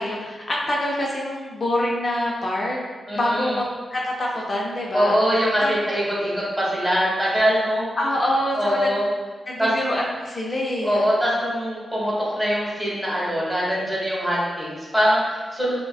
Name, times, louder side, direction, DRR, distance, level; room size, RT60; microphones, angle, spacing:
voice 1, 0.0-2.8 3.1-5.8 8.0-8.9 9.5-11.1, left 1 dB, 45° left, -3 dB, 0.6 m, -26 dB
voice 2, 3.1-3.6 4.9-7.9 8.5-9.1 9.6-9.7 10.8-15.8, equal, 5° right, -6 dB, 1.4 m, -23 dB
5.2 x 2.2 x 2.3 m, 1.4 s
cardioid pair, 80°, 0 cm